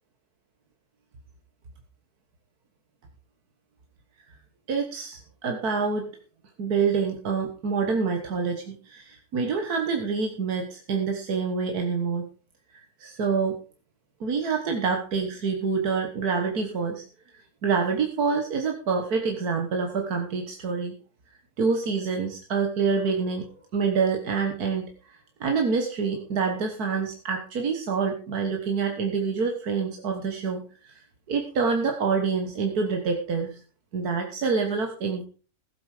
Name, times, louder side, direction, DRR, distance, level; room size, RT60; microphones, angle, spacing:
voice 1, 4.7-6.1 6.6-12.2 12.7-13.6 14.2-17.0 17.6-21.0 21.6-23.5 23.7-33.6 33.9-35.2, right 5 dB, 80° right, 3 dB, 1.9 m, -27 dB
15.0 x 9.0 x 4.9 m, 0.39 s
omnidirectional pair, 1.6 m